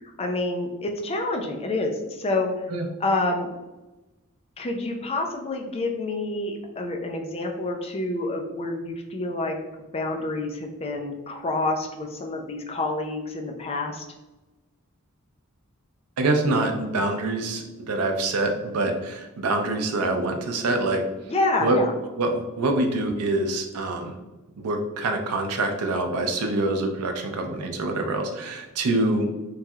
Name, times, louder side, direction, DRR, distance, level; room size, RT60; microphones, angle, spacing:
voice 1, 0.2-2.5 3.0-3.5 4.6-9.6 9.9-14.0 21.3-21.9, left 2 dB, 25° left, 3 dB, 0.4 m, -28 dB
voice 2, 16.2-21.0 21.6-21.8 22.2-24.1 24.6-29.3, right 2 dB, 85° right, 4 dB, 0.5 m, -25 dB
3.1 x 2.7 x 2.3 m, 1.1 s
head